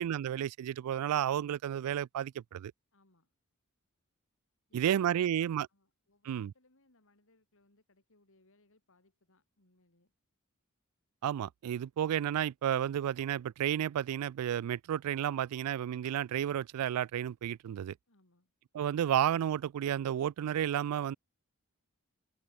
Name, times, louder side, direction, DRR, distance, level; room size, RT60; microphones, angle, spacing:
voice 1, 0.0-2.7 4.7-5.7 6.3-6.5 11.2-17.9 18.7-21.2, right 10 dB, 90° right, 0.3 m, -32 dB
voice 2, 2.9-3.3 4.7-10.1 18.1-18.5, left 2 dB, 65° left, 3.6 m, -69 dB
head